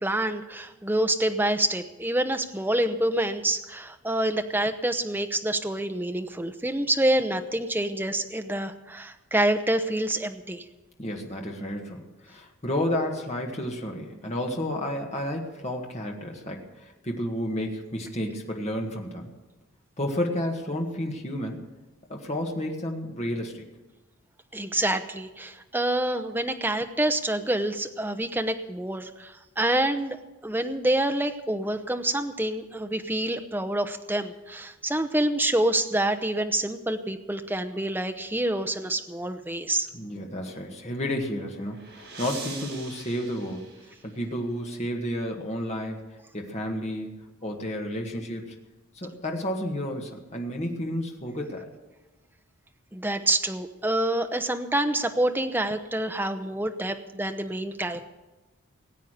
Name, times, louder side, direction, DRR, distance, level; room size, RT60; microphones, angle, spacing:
voice 1, 0.0-10.7 24.5-30.2 30.4-39.9 52.9-58.1, right 1 dB, 10° right, 6 dB, 0.7 m, -27 dB
voice 2, 11.0-19.3 20.0-21.7 22.1-23.6 39.9-43.7 44.0-48.5 48.9-51.7, left 1 dB, 30° left, 1 dB, 1.7 m, -31 dB
sound 1, 41.2-44.5, right 4 dB, 60° right, 4.2 m, -43 dB
18.5 x 8.3 x 6.6 m, 1.1 s
head